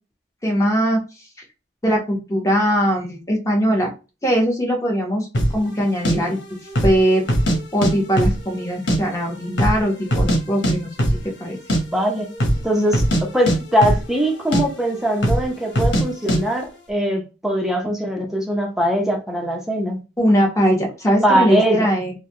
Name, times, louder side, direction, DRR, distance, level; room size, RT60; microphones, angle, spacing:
voice 1, 0.4-1.0 1.8-3.9 4.2-5.3 5.5-6.4 6.8-7.2 7.7-11.6 20.2-22.1, equal, 20° left, 1.1 m, -20 dB
sound 1, 5.3-5.6 6.0-6.1 6.7-7.0 7.3-7.9 8.2-9.0 9.2-9.3 9.6-10.4 10.6-10.7 11.0-11.2 11.5-11.8 12.3-12.6 12.9-14.3 14.5-14.6 15.2-15.5 15.8-16.0 16.3-16.4, equal, 85° left, 1.2 m, -19 dB
voice 2, 11.9-12.3 12.6-20.0 21.2-21.9, equal, 5° right, 0.8 m, -21 dB
3.9 x 2.3 x 3.1 m
head